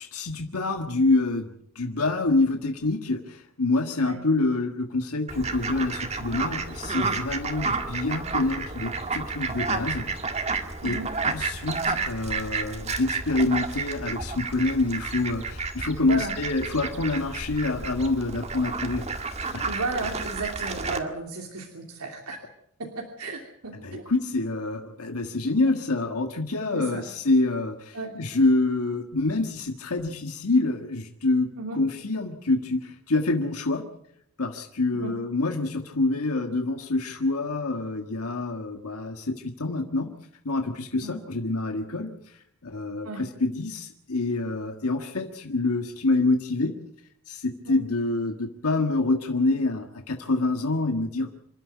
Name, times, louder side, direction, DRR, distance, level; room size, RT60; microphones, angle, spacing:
voice 1, 0.0-1.5 1.7-10.1 10.8-11.0 11.2-19.1 19.5-19.6 23.7-33.8 34.4-40.1 40.4-46.7 47.2-51.3, left 2 dB, 85° left, 5 dB, 1.6 m, -26 dB
Fowl, 5.3-21.0, right 4 dB, 30° right, 1.9 m, -31 dB
voice 2, 16.0-16.3 19.6-22.4 22.8-22.9 23.2-24.1 26.7-27.1 27.9-28.1 31.6-31.8 35.0-35.1 41.0-41.1 43.0-43.2 47.6-47.8, right 3 dB, 85° right, 1 dB, 2.9 m, -34 dB
27.5 x 12.0 x 9.4 m, 0.76 s
head